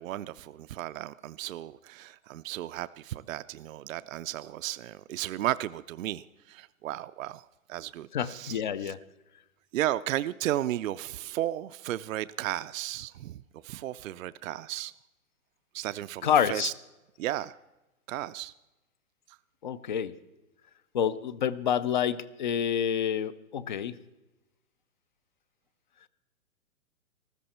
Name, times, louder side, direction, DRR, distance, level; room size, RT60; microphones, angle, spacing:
voice 1, 0.0-8.9 9.7-14.9 15.7-16.7 17.2-17.6 18.1-18.5, right 14 dB, 65° right, 13 dB, 0.5 m, -34 dB
voice 2, 8.1-9.0 16.2-16.7 19.6-20.1 20.9-24.0, left 8 dB, 35° left, 17 dB, 0.4 m, -28 dB
14.5 x 13.5 x 4.3 m, 1.0 s
hypercardioid pair, 145°, 43 cm